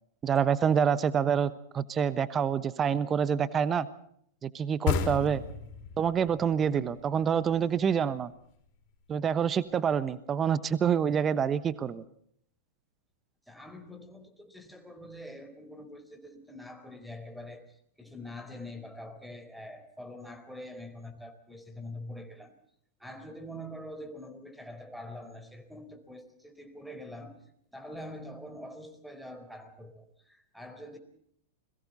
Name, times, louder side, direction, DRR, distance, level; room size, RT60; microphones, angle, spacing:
voice 1, 0.2-3.9 4.4-5.4 6.0-8.3 9.1-12.0, right 7 dB, 25° right, 15 dB, 1.2 m, -27 dB
sound 1, 4.9-8.3, left 7 dB, 50° left, 4.9 m, -33 dB
voice 2, 13.5-22.5 23.0-27.4 27.7-31.0, left 1 dB, ahead, 10 dB, 4.3 m, -45 dB
30.0 x 22.5 x 4.2 m, 0.67 s
hypercardioid pair, 105°, 0 cm